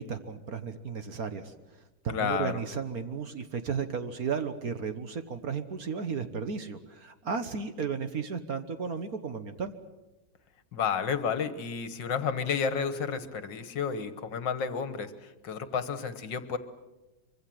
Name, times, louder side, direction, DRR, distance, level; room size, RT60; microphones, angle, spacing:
voice 1, 0.0-1.5 2.0-9.7, right 6 dB, 50° right, 9 dB, 1.6 m, -34 dB
voice 2, 2.1-2.6 10.7-16.6, left 6 dB, 65° left, 12 dB, 2.0 m, -31 dB
24.5 x 24.5 x 7.8 m, 1.0 s
omnidirectional pair, 2.2 m